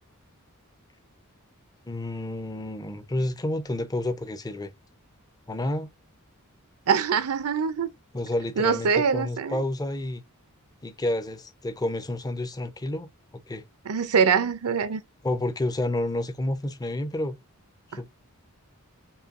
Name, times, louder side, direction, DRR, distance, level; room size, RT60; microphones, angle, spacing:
voice 1, 1.9-4.7 5.5-5.9 8.1-10.2 10.8-13.1 13.5-13.6 15.2-17.4 17.9-18.1, left 1 dB, 15° left, 0.5 m, -30 dB
voice 2, 6.9-7.9 8.6-9.6 13.9-15.0, right 6 dB, 80° right, 0.6 m, -23 dB
5.4 x 2.3 x 2.5 m
head